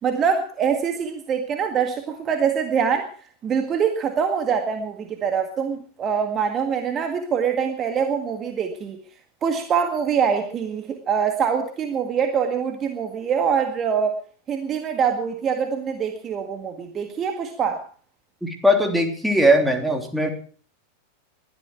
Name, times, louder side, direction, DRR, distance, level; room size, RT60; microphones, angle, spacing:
voice 1, 0.0-3.1 3.4-9.0 9.4-14.2 14.5-17.8, right 7 dB, 25° right, 5 dB, 1.9 m, -24 dB
voice 2, 18.4-20.3, equal, ahead, 2 dB, 3.3 m, -19 dB
21.5 x 13.0 x 4.7 m, 0.43 s
figure-of-eight pair, 90°, 0 cm